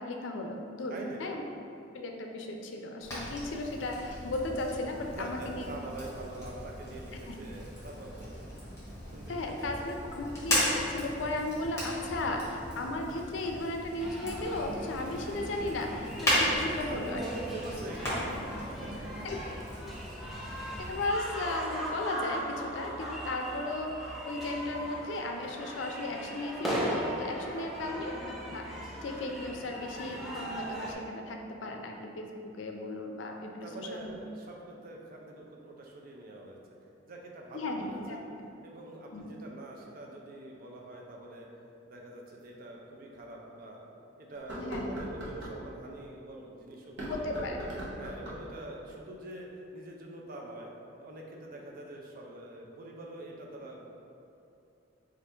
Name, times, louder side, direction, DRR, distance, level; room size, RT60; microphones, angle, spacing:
voice 1, 0.0-1.4 1.9-5.6 7.3-7.4 9.3-17.2 19.2-19.4 20.9-28.7 29.0-32.3 32.6-34.2 37.5-38.5 39.1-39.3 44.6-44.9 47.1-47.7, left 2 dB, 75° left, 2 dB, 0.4 m, -35 dB
voice 2, 0.9-1.5 5.0-8.4 9.1-9.9 16.8-19.1 27.5-28.1 33.6-36.6 37.1-38.3 38.6-41.5 41.9-43.9 44.2-47.5 48.0-49.5 49.7-50.7 51.0-53.8, right 1 dB, 50° right, -1 dB, 0.5 m, -44 dB
Fire, 3.0-21.1, equal, 15° left, 1.2 m, -36 dB
sound 1, 14.0-30.9, right 1 dB, ahead, 0.5 m, -39 dB
sound 2, 42.4-42.5 43.1-43.2 44.3-45.6 46.8-48.5, equal, 70° right, 0.8 m, -39 dB
3.3 x 2.5 x 4.3 m, 2.7 s
head